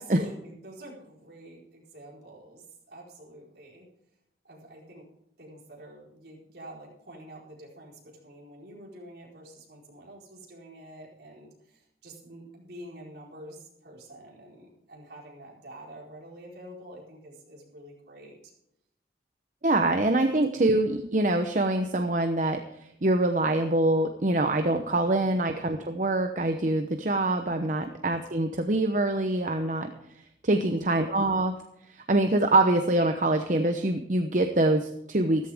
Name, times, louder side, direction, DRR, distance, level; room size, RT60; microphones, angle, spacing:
voice 1, 0.0-3.9 4.4-5.1 5.4-18.5 20.2-20.7 27.6-27.9 30.5-30.9, right 1 dB, 65° right, -3 dB, 4.8 m, -47 dB
voice 2, 19.6-29.9 30.4-31.5 31.9-35.5, right 2 dB, 45° right, 6 dB, 0.9 m, -25 dB
14.5 x 14.0 x 3.6 m, 0.78 s
head